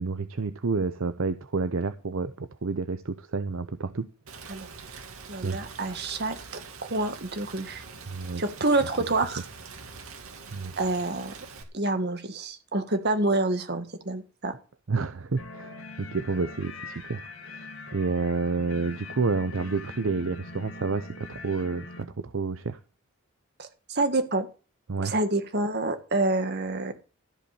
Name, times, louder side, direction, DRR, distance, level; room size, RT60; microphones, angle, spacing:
voice 1, 0.0-4.1 5.4-5.7 8.1-8.4 10.5-10.7 14.9-22.8 24.9-25.1, right 4 dB, 65° right, 12 dB, 0.7 m, -29 dB
Rain, 4.3-11.6, right 5 dB, 90° right, 2.3 m, -44 dB
voice 2, 5.3-6.4 6.8-7.8 8.4-9.4 10.8-11.3 11.7-14.5 23.6-24.5 25.0-26.9, right 2 dB, 50° right, 8 dB, 1.7 m, -27 dB
sound 1, 15.4-22.0, left 3 dB, 70° left, 2.2 m, -43 dB
14.0 x 5.3 x 8.4 m, 0.34 s
head